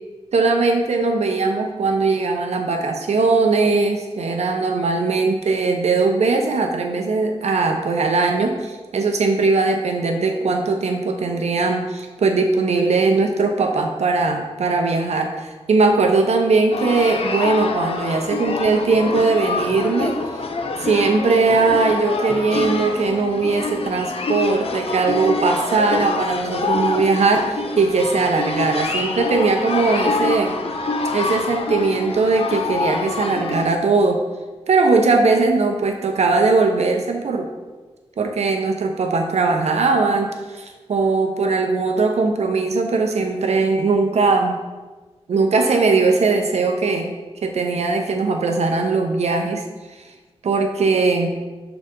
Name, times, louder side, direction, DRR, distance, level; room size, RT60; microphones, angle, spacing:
voice 1, 0.3-20.1 20.8-30.5 31.1-34.2 34.7-37.5 38.2-44.6 45.3-47.1 47.4-49.6 50.4-51.4, right 3 dB, 85° right, 3 dB, 0.8 m, -19 dB
sound 1, 16.7-33.7, left 3 dB, 65° left, 0.5 m, -26 dB
6.8 x 4.0 x 3.7 m, 1.2 s
wide cardioid pair, 145°, 11 cm